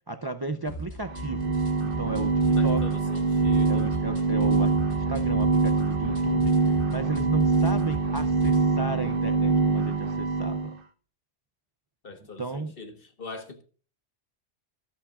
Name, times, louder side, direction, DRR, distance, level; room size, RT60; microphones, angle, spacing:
voice 1, 0.1-2.8 3.6-10.8 12.4-12.7, right 3 dB, 30° right, 0.5 m, -34 dB
sound 1, 0.7-8.7, left 1 dB, 65° left, 7.4 m, -38 dB
sound 2, 1.1-10.7, right 4 dB, 50° right, 1.2 m, -24 dB
voice 2, 2.6-4.0 12.0-13.6, left 3 dB, 50° left, 1.6 m, -42 dB
24.0 x 8.5 x 2.4 m
omnidirectional pair, 1.2 m